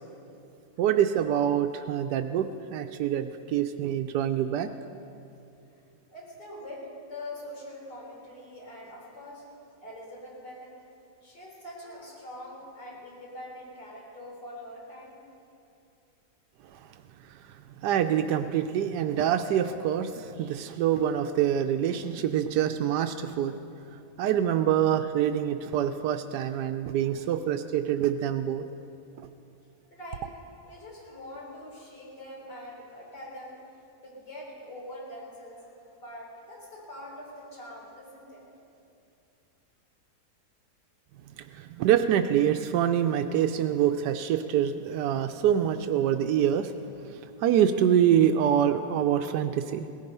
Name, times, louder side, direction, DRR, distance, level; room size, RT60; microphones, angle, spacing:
voice 1, 0.8-4.7 16.7-16.8 17.4-17.5 17.8-23.6 24.2-28.7 41.4-46.7 47.1-49.9, right 10 dB, 85° right, 8 dB, 1.2 m, -25 dB
voice 2, 6.1-9.4 9.8-10.7 11.2-15.2 27.0-27.2 29.9-30.3 30.6-33.6 34.0-38.4, left 1 dB, 80° left, -4 dB, 4.7 m, -43 dB
18.0 x 14.5 x 5.4 m, 2.6 s
omnidirectional pair, 1.8 m